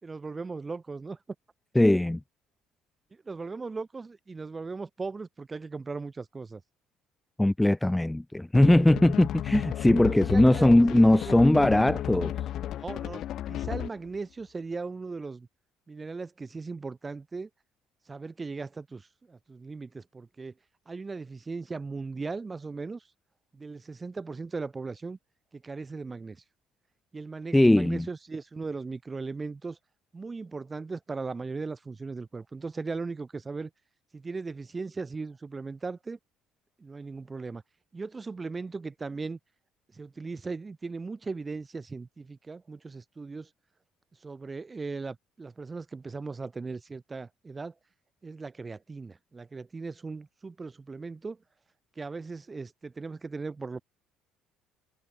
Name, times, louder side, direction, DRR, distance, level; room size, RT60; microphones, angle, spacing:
voice 1, 0.0-1.2 3.1-6.6 10.0-11.3 12.7-15.5 15.9-17.5 18.1-20.5 20.9-23.0 23.5-25.2 25.5-26.4 27.1-29.8 30.1-33.7 34.1-36.2 36.8-37.6 37.9-39.4 39.9-43.5 44.2-47.7 48.2-51.4 52.0-53.8, right 4 dB, 20° right, 4.8 m, -38 dB
voice 2, 1.8-2.2 7.4-12.3 27.5-28.1, left 1 dB, 5° left, 2.3 m, -20 dB
sound 1, 8.5-14.1, left 12 dB, 55° left, 6.2 m, -33 dB
cardioid pair, 120°, 0 cm